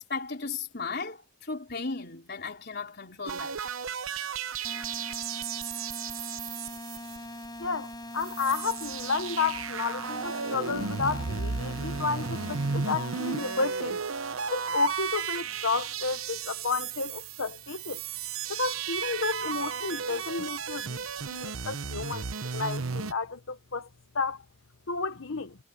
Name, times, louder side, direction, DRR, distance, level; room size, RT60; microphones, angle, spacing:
voice 1, 0.0-3.7, left 4 dB, 50° left, 4.0 m, -36 dB
sound 1, 3.3-7.7 7.9-8.0 8.2-23.1, right 6 dB, 85° right, 1.0 m, -34 dB
sound 2, 4.6-13.6, left 1 dB, 20° left, 4.5 m, -42 dB
voice 2, 7.6-14.0 14.5-18.0 18.5-21.1 21.3-22.2 22.5-23.9 24.1-24.4 24.9-25.6, left 4 dB, 75° left, 0.9 m, -31 dB
head